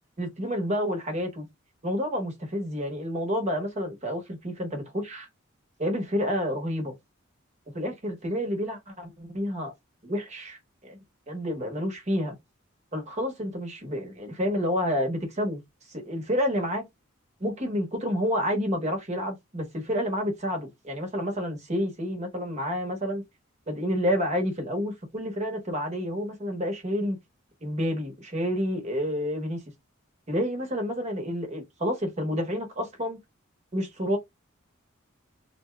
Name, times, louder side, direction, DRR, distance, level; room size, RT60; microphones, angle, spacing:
voice 1, 0.2-1.5 1.8-5.3 5.8-6.9 7.7-9.7 10.0-11.0 11.3-12.4 12.9-15.6 15.9-16.8 17.4-23.2 23.7-27.2 27.6-29.6 30.3-33.2 33.7-34.2, equal, 35° right, 1.0 m, -29 dB
2.7 x 2.2 x 3.1 m
head